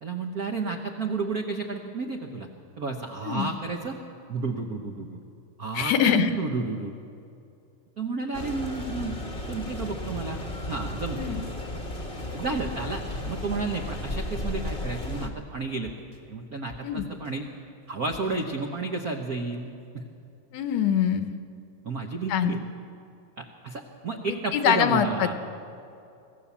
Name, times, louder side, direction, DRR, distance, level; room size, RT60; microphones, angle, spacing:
voice 1, 0.0-2.5 2.8-4.0 4.3-5.2 5.6-6.9 8.0-9.2 9.4-11.3 12.3-15.9 16.3-17.5 17.9-20.0 21.8-22.6 23.4-25.3, right 3 dB, 70° right, 3 dB, 0.8 m, -32 dB
voice 2, 5.8-6.3 11.2-11.4 16.8-17.1 20.5-21.4 22.3-22.6 24.5-25.3, left 8 dB, 70° left, 9 dB, 1.9 m, -24 dB
sound 1, 8.3-15.3, left 1 dB, 35° left, 0.9 m, -34 dB
sound 2, 11.0-11.1 11.4-11.7 12.2-12.8 13.3-13.4 13.7-13.9 14.4-15.4 15.8-16.2 16.7-17.3 18.1-18.4, left 1 dB, 35° right, 0.7 m, -46 dB
24.5 x 15.5 x 7.3 m, 2.6 s
omnidirectional pair, 3.5 m